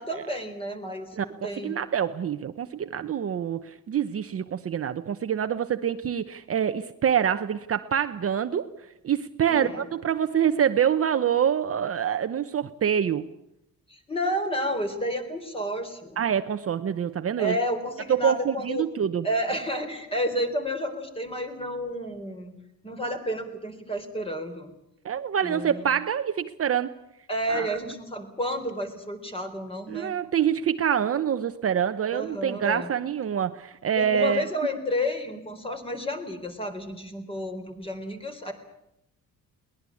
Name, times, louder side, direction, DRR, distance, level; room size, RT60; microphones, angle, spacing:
voice 1, 0.0-1.7 9.5-9.9 13.9-16.2 17.4-18.9 19.2-22.5 22.8-24.7 25.4-25.9 27.3-30.2 32.1-32.9 34.0-38.5, equal, 15° left, 7 dB, 3.9 m, -31 dB
voice 2, 1.6-8.7 9.0-13.3 16.2-17.6 18.1-19.3 25.0-26.9 27.5-27.7 29.9-34.4, right 8 dB, 40° right, 9 dB, 0.9 m, -26 dB
22.5 x 19.5 x 8.5 m, 0.83 s
cardioid pair, 155°, 35 cm